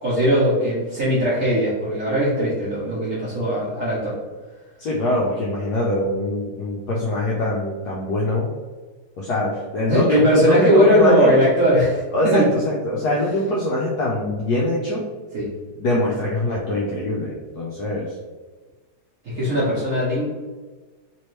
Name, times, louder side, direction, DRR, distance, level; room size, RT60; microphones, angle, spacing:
voice 1, 0.0-4.2 9.9-12.5 15.3-15.5 19.2-20.2, equal, 55° right, -7 dB, 0.9 m, -19 dB
voice 2, 4.8-8.5 9.2-11.3 12.1-15.0 15.8-18.1, left 1 dB, 75° left, -4 dB, 0.9 m, -23 dB
3.4 x 3.0 x 3.1 m, 1.3 s
omnidirectional pair, 2.3 m